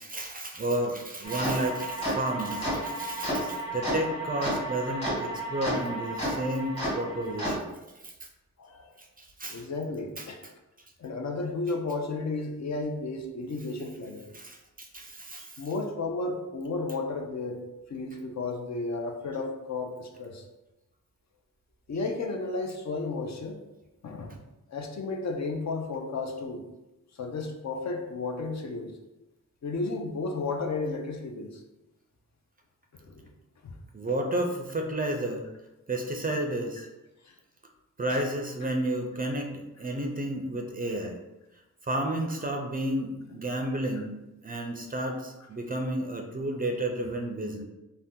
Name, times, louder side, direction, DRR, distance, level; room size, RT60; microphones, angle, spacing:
voice 1, 0.0-7.7 8.0-8.1 9.2-9.7 10.2-10.3 14.3-15.7 33.9-35.5 35.9-36.9 38.0-41.2 41.8-44.1 44.4-47.6, right 1 dB, 30° right, 2 dB, 0.4 m, -32 dB
sound 1, 1.2-7.6, right 1 dB, 20° left, 1.4 m, -32 dB
voice 2, 8.6-8.9 9.5-10.4 11.0-14.3 15.6-17.6 17.9-20.4 21.9-23.6 24.0-24.3 24.7-26.6 27.2-28.9 29.6-31.6 33.0-33.2 33.6-33.8 36.8-36.9 37.2-37.3 38.1-38.2, left 3 dB, 60° left, 2 dB, 0.5 m, -33 dB
2.7 x 2.1 x 3.5 m, 0.99 s
wide cardioid pair, 95°, 32 cm